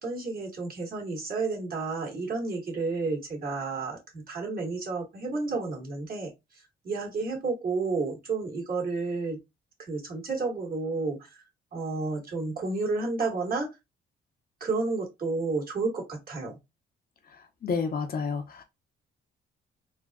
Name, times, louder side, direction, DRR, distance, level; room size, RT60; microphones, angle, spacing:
voice 1, 0.0-6.3 6.8-9.4 9.8-11.4 11.7-13.7 14.6-16.6, right 3 dB, 45° right, 1.9 m, -31 dB
voice 2, 17.3-18.6, left 5 dB, 50° left, 0.8 m, -31 dB
3.7 x 2.5 x 2.3 m
cardioid pair, 90°, 20 cm